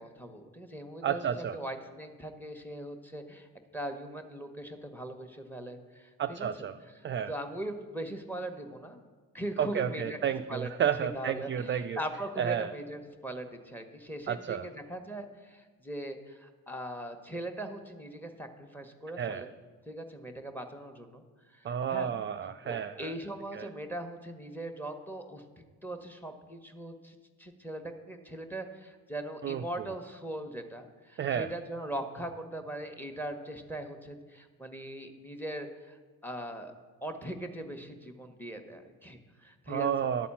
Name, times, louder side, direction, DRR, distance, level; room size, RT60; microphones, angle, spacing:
voice 1, 0.0-1.3 1.5-6.5 7.0-9.0 9.3-10.2 10.5-10.7 11.0-19.5 19.9-22.1 22.6-36.7 37.0-39.9, right 1 dB, 5° left, 6 dB, 1.1 m, -40 dB
voice 2, 1.0-1.6 6.2-6.8 7.0-7.3 9.6-12.0 12.4-12.7 14.3-14.7 19.2-19.4 21.6-23.1 23.5-23.7 29.4-29.6 31.2-31.5 39.7-40.3, right 8 dB, 30° right, 8 dB, 0.4 m, -31 dB
11.5 x 4.2 x 7.2 m, 1.4 s
hypercardioid pair, 55°, 39 cm